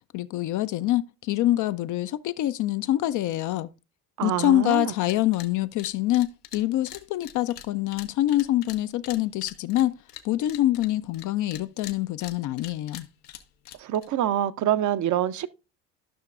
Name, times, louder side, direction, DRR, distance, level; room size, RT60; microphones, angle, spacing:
voice 1, 0.1-3.7 4.2-10.0 10.2-13.1, left 14 dB, 45° left, 0.4 m, -25 dB
voice 2, 4.2-4.9 13.8-15.5, right 11 dB, 40° right, 0.6 m, -25 dB
sound 1, 4.6-4.8 5.0-5.5 5.8-11.3 11.5-14.1, left 11 dB, 85° left, 0.8 m, -43 dB
13.0 x 5.8 x 2.4 m
hypercardioid pair, 70°, 45 cm